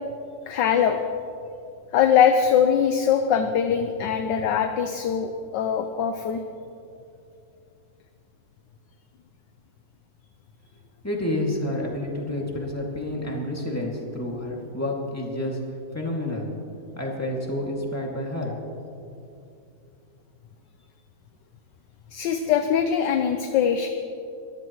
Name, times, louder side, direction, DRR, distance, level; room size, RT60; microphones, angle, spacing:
voice 1, 0.5-1.1 1.9-6.4 22.1-23.9, left 8 dB, 70° left, 7 dB, 1.2 m, -22 dB
voice 2, 11.0-15.6 15.9-16.5 17.0-18.6, left 1 dB, 10° left, -2 dB, 2.1 m, -29 dB
22.5 x 14.5 x 3.1 m, 2.6 s
omnidirectional pair, 2.2 m